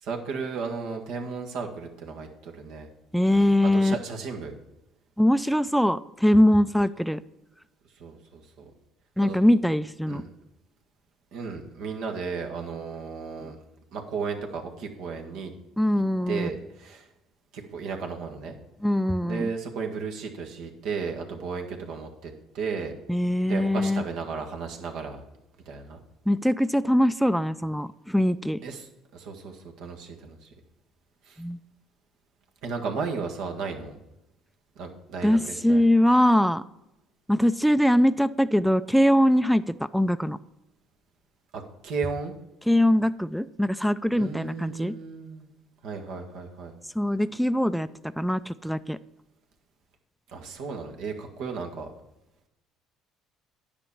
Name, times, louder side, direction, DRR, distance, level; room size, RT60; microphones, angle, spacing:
voice 1, 0.0-2.9 3.3-4.6 8.0-8.6 9.2-9.4 10.1-10.3 11.3-13.6 13.9-15.5 16.3-17.1 17.5-18.6 19.2-23.0 23.4-25.2 25.6-26.0 28.6-30.5 31.2-31.4 32.6-34.0 34.7-35.8 41.5-42.3 44.1-45.5 45.8-46.7 50.3-51.9, right 5 dB, 70° right, 3 dB, 1.7 m, -34 dB
voice 2, 3.1-3.9 5.2-7.2 9.2-10.3 15.8-16.5 18.8-19.5 23.1-24.0 26.3-28.6 31.4-31.6 35.2-36.6 37.3-40.4 42.7-45.0 47.0-47.9 48.2-49.0, left 1 dB, ahead, 15 dB, 0.4 m, -22 dB
10.0 x 5.1 x 7.2 m, 0.91 s
supercardioid pair, 75°, 0 cm